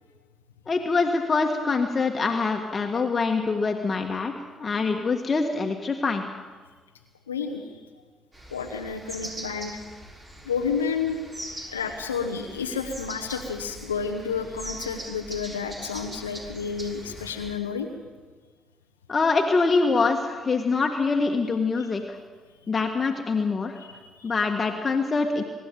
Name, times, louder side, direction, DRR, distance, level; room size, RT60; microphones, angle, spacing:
voice 1, 0.7-4.3 4.6-6.2 19.1-22.2 22.7-23.8 24.2-25.4, left 4 dB, 35° left, 3 dB, 1.7 m, -24 dB
voice 2, 7.3-7.6 8.5-9.7 10.4-11.2 11.5-17.9 21.8-21.9 23.8-24.3, left 6 dB, 85° left, 3 dB, 0.9 m, -30 dB
sound 1, 8.3-17.5, right 1 dB, 30° right, 6.0 m, -41 dB
24.5 x 12.0 x 8.9 m, 1.4 s
figure-of-eight pair, 45°, 0 cm